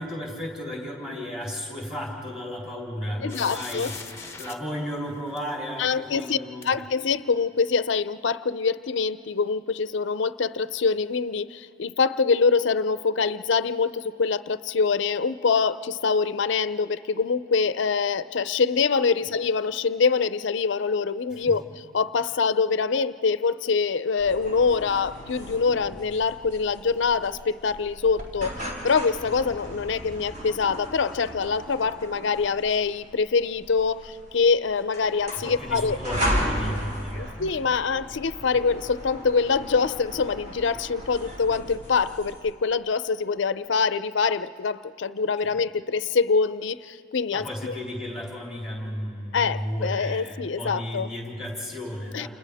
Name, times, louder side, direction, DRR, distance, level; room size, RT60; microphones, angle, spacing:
voice 1, 0.0-6.7 19.2-19.3 21.5-21.6 35.4-37.5 45.4-45.5 47.3-52.3, equal, 5° right, -4 dB, 3.7 m, -34 dB
voice 2, 3.2-3.9 5.8-6.4 6.6-21.6 21.9-36.0 37.2-47.7 49.3-51.1 52.1-52.3, left 5 dB, 65° left, 14 dB, 0.5 m, -24 dB
sound 1, 3.3-4.5 5.4-5.5 6.6-6.7, left 5 dB, 15° left, 0.9 m, -39 dB
sound 2, 24.2-42.5, equal, 40° right, 3.9 m, -36 dB
29.5 x 29.0 x 3.5 m, 2.9 s
head